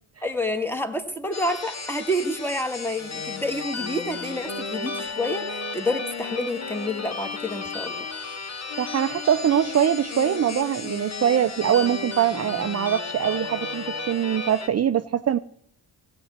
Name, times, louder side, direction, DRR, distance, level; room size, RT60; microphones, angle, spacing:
voice 1, 0.2-8.1, left 1 dB, 5° left, 7 dB, 1.6 m, -28 dB
sound 1, 1.3-14.7, left 3 dB, 30° left, 1.4 m, -35 dB
sound 2, 3.0-8.2 8.7-14.3, left 5 dB, 55° left, 1.6 m, -39 dB
voice 2, 8.8-15.4, right 9 dB, 30° right, 11 dB, 0.5 m, -23 dB
16.5 x 7.9 x 4.4 m, 0.69 s
hypercardioid pair, 45°, 49 cm